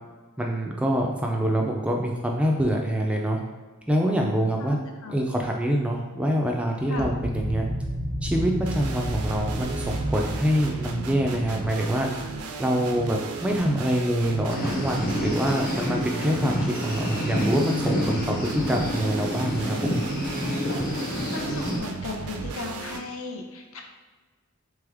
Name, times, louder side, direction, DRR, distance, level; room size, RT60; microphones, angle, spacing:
voice 1, 0.4-3.4 3.9-4.8 5.1-7.7 8.2-12.1 12.6-20.0, equal, 5° right, 0 dB, 0.3 m, -25 dB
voice 2, 4.6-5.2 6.9-7.1 21.1-23.8, left 3 dB, 70° left, 2 dB, 0.6 m, -36 dB
sound 1, 7.0-11.6, equal, 20° left, 0.7 m, -31 dB
sound 2, 8.7-23.0, right 4 dB, 80° right, 0.4 m, -35 dB
sound 3, 14.5-21.8, left 1 dB, 40° left, 1.1 m, -29 dB
3.4 x 3.3 x 3.4 m, 1.3 s
head